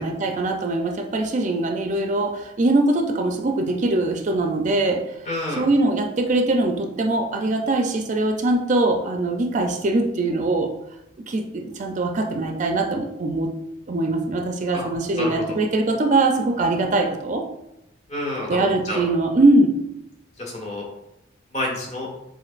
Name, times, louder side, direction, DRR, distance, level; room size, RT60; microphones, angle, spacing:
voice 1, 0.0-5.0 5.6-10.7 11.3-13.5 13.9-17.4 18.5-19.8, right 2 dB, 40° right, 4 dB, 0.4 m, -22 dB
voice 2, 5.2-5.7 14.7-14.9 15.2-15.3 18.1-19.1 20.4-20.8 21.5-22.1, left 1 dB, 40° left, -2 dB, 1.3 m, -28 dB
7.3 x 2.5 x 2.5 m, 0.87 s
head